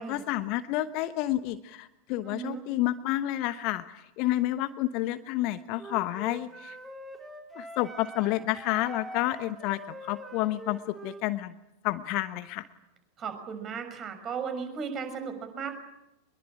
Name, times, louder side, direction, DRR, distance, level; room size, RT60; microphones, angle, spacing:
voice 1, 0.0-6.8 7.5-11.6 11.8-12.7, left 15 dB, 40° left, 12 dB, 1.1 m, -30 dB
voice 2, 2.2-2.7 13.2-15.8, right 6 dB, 30° right, 8 dB, 6.2 m, -36 dB
Wind instrument woodwind instrument, 5.8-11.3, right 1 dB, 10° right, 4.5 m, -44 dB
25.0 x 22.0 x 8.9 m, 0.89 s
figure-of-eight pair, 90°, 0 cm